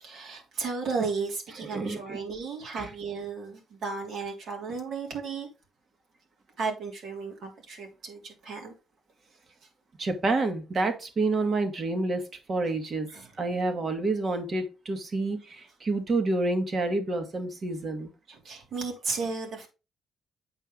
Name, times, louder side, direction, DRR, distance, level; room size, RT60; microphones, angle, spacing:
voice 1, 0.0-5.5 6.6-8.7 13.1-13.3 18.3-19.7, right 4 dB, 70° right, 3.1 m, -34 dB
voice 2, 1.7-2.2 2.8-2.9 10.0-12.2 12.5-13.1 13.4-18.1, right 2 dB, 45° right, 1.9 m, -28 dB
8.1 x 5.5 x 3.8 m
cardioid pair, 90°, 0 cm